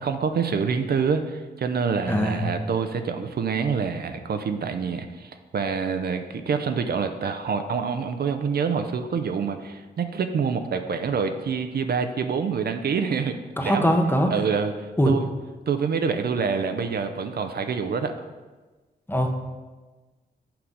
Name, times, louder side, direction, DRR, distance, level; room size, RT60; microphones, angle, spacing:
voice 1, 0.0-13.3 13.6-14.0 14.3-15.2 15.7-18.1, right 6 dB, 60° right, 8 dB, 0.6 m, -26 dB
voice 2, 2.1-2.4 13.6-14.3 15.0-15.1 19.1-19.4, equal, 10° left, 4 dB, 0.8 m, -21 dB
5.9 x 4.9 x 5.4 m, 1.3 s
cardioid pair, 85°, 18 cm